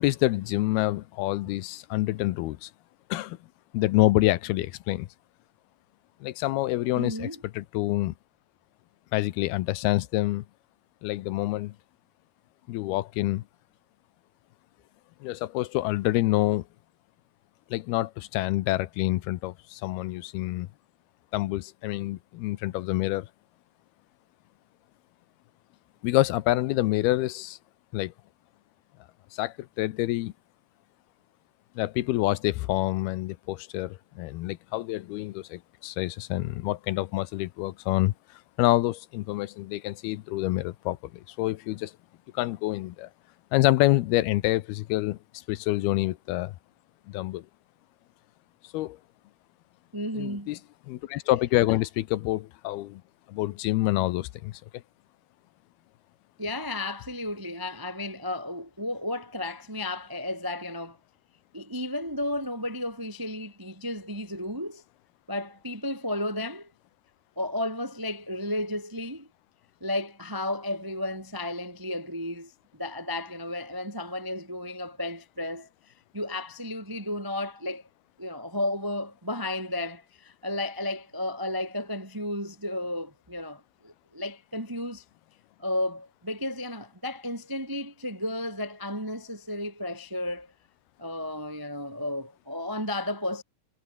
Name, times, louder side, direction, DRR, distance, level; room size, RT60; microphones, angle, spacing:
voice 1, 0.0-2.7 3.1-3.4 3.7-5.1 6.2-7.3 7.5-8.1 9.1-10.4 11.0-11.7 12.7-13.4 15.2-16.6 17.7-20.7 21.3-23.3 26.0-27.6 27.9-28.1 29.3-30.3 31.8-38.1 38.6-41.0 41.4-41.9 42.3-43.1 43.5-45.2 45.5-46.5 47.1-47.4 48.7-49.0 50.1-50.6 50.9-53.0 53.3-54.6, left 17 dB, 85° left, 2.7 m, -27 dB
voice 2, 7.0-7.4 49.9-50.5 56.4-61.0 61.5-64.8 65.3-66.7 67.4-69.3 69.8-72.5 72.8-75.7 76.1-77.8 78.2-85.0 85.6-90.5 91.0-93.4, left 1 dB, 20° right, 0.5 m, -33 dB
omnidirectional pair, 4.6 m